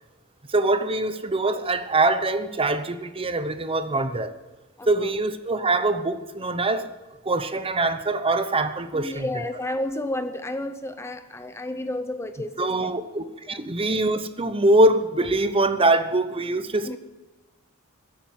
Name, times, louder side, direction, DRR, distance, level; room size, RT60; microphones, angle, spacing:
voice 1, 0.5-4.3 4.9-6.9 7.2-9.2 12.6-17.0, right 2 dB, 25° right, 11 dB, 0.9 m, -23 dB
voice 2, 4.8-5.1 8.9-12.9 13.5-13.6 16.8-17.0, left 1 dB, 10° left, 9 dB, 0.6 m, -31 dB
14.5 x 8.8 x 9.2 m, 1.1 s
head